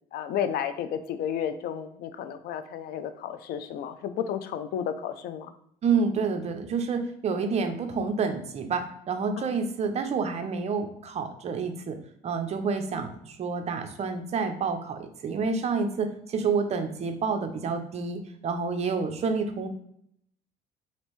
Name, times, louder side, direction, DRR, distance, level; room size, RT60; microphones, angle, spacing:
voice 1, 0.1-5.5 9.4-9.5, left 9 dB, 70° left, 10 dB, 0.4 m, -32 dB
voice 2, 5.8-12.0 12.2-19.7, right 5 dB, 40° right, 6 dB, 0.5 m, -29 dB
3.1 x 2.6 x 3.0 m, 0.71 s
cardioid pair, 110°, 17 cm